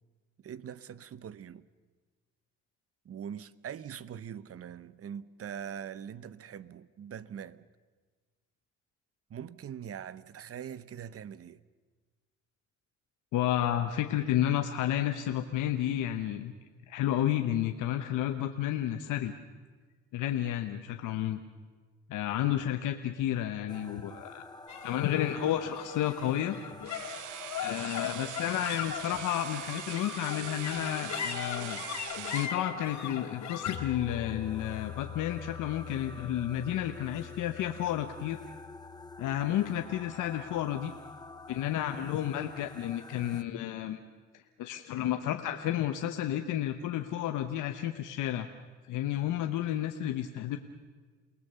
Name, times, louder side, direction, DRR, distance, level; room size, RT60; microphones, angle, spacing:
voice 1, 0.4-1.6 3.0-7.6 9.3-11.6, right 8 dB, 50° right, 0.9 m, -42 dB
voice 2, 13.3-16.5 16.9-19.3 20.1-21.4 22.1-24.4 24.8-26.6 27.6-31.8 32.3-38.4 39.2-40.9 41.5-44.0 44.3-48.5 48.9-50.6, left 11 dB, 90° left, 1.1 m, -31 dB
sound 1, 23.7-43.4, left 2 dB, 15° left, 1.0 m, -49 dB
sound 2, 24.7-41.2, left 9 dB, 70° left, 2.1 m, -41 dB
sound 3, 26.8-32.6, right 13 dB, 85° right, 0.9 m, -42 dB
29.0 x 19.0 x 6.9 m
cardioid pair, 90°, 30 cm